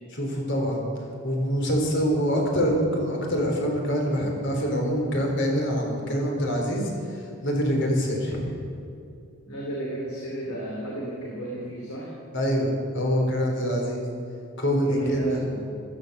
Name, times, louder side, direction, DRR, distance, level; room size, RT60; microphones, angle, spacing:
voice 1, 0.1-0.8 1.2-8.5 12.3-14.0 14.6-15.4, equal, 55° left, 0 dB, 3.8 m, -25 dB
voice 2, 9.5-12.1 14.8-15.8, right 1 dB, 75° left, -3 dB, 3.2 m, -33 dB
15.0 x 13.5 x 6.8 m, 2.7 s
head